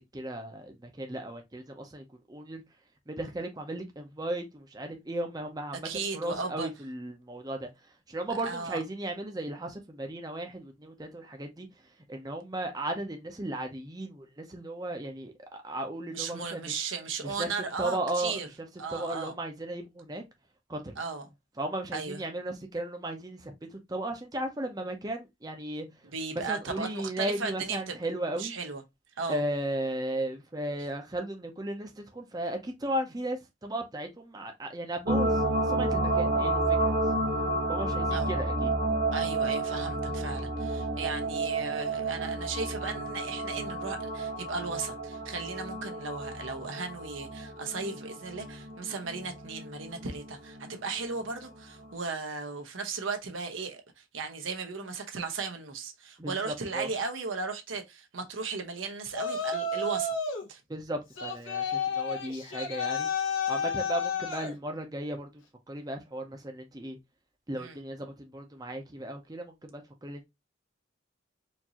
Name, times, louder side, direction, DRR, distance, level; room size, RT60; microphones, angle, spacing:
voice 1, 0.1-2.6 3.1-11.7 12.1-16.7 17.2-17.5 17.8-18.5 18.9-20.2 20.7-20.9 21.6-25.9 26.3-28.5 29.3-37.0 37.7-38.7 56.2-56.9 60.7-63.1 63.5-67.0 67.5-70.2, right 1 dB, 20° right, 0.6 m, -36 dB
voice 2, 5.8-6.7 8.4-8.8 16.1-18.5 18.8-19.3 21.0-21.3 21.9-22.2 26.1-28.0 28.4-28.8 29.2-29.4 38.1-38.3 39.1-60.1 60.5-60.6 67.6-67.8, right 4 dB, 90° right, 0.9 m, -36 dB
sound 1, 35.1-50.8 51.2-51.3, right 2 dB, 55° right, 0.7 m, -31 dB
Yell, 59.1-60.5 61.2-64.5, left 4 dB, 90° left, 1.1 m, -31 dB
4.5 x 2.6 x 2.8 m
head